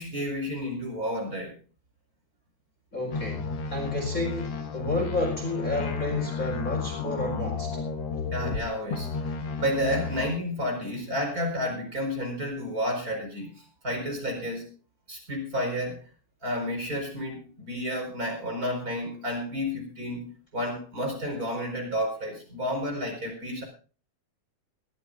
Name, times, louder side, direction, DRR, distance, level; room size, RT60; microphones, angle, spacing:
voice 1, 0.0-1.6 8.3-9.1 9.6-14.7 15.1-16.0 16.4-23.6, equal, 25° right, 3 dB, 5.0 m, -31 dB
voice 2, 2.9-7.9, left 2 dB, 25° left, 0 dB, 4.8 m, -31 dB
sound 1, 3.1-8.6 8.9-10.3, left 4 dB, 50° left, 1.7 m, -33 dB
21.5 x 14.0 x 2.5 m, 0.37 s
omnidirectional pair, 3.5 m